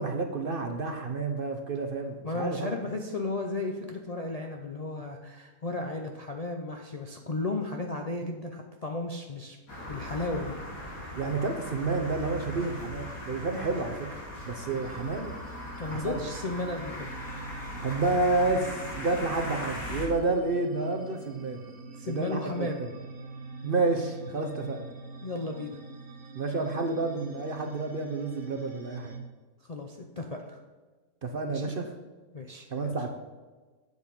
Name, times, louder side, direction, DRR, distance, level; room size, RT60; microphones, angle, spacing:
voice 1, 0.0-2.8 11.1-14.1 14.5-15.4 15.8-16.2 17.8-21.7 22.0-22.9 23.6-24.9 26.3-29.2 31.2-31.9 32.7-33.1, right 3 dB, 45° right, 4 dB, 0.8 m, -30 dB
voice 2, 2.2-9.6 9.9-10.6 15.8-17.1 22.0-22.8 25.2-25.8 29.6-30.6 31.5-31.7 32.3-32.9, left 2 dB, 40° left, 1 dB, 0.5 m, -34 dB
sound 1, 9.7-20.1, left 1 dB, 65° left, 3.0 m, -39 dB
sound 2, 14.7-29.2, right 3 dB, 65° right, 1.9 m, -45 dB
8.0 x 7.3 x 5.3 m, 1.3 s
omnidirectional pair, 1.6 m